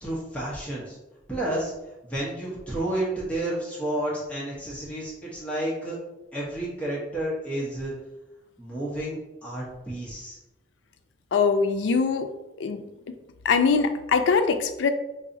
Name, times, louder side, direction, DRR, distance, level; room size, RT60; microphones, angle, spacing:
voice 1, 0.0-1.0 1.3-1.7 2.0-6.0 6.3-7.9 8.6-10.4, right 1 dB, 5° left, -6 dB, 1.0 m, -31 dB
voice 2, 11.3-12.3 12.6-13.1 13.4-14.9, left 5 dB, 90° left, 8 dB, 0.4 m, -23 dB
3.9 x 2.7 x 2.6 m, 0.96 s
head